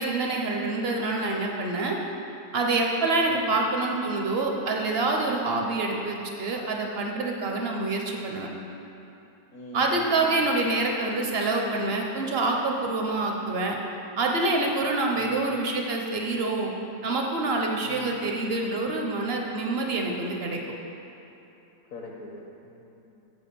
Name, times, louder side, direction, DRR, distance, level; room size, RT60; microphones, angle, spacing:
voice 1, 0.0-2.0 2.5-8.5 9.7-13.8 14.2-16.7 17.0-20.6, right 2 dB, 50° right, 1 dB, 0.7 m, -26 dB
voice 2, 9.5-10.6 15.1-15.5 17.8-18.2 21.9-23.2, left 1 dB, 60° left, -1 dB, 1.1 m, -43 dB
8.4 x 4.8 x 6.8 m, 2.9 s
omnidirectional pair, 1.9 m